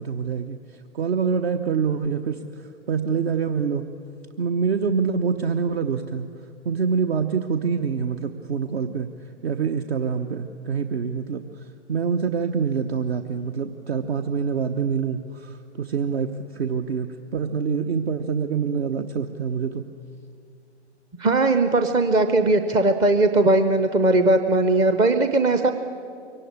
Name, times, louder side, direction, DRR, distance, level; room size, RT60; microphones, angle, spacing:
voice 1, 0.0-3.9 4.4-6.3 6.6-9.1 9.4-19.9, right 6 dB, 60° right, 7 dB, 1.0 m, -26 dB
voice 2, 21.2-25.7, right 2 dB, 10° right, 7 dB, 0.5 m, -19 dB
23.0 x 18.0 x 9.9 m, 2.3 s
figure-of-eight pair, 115°, 35 cm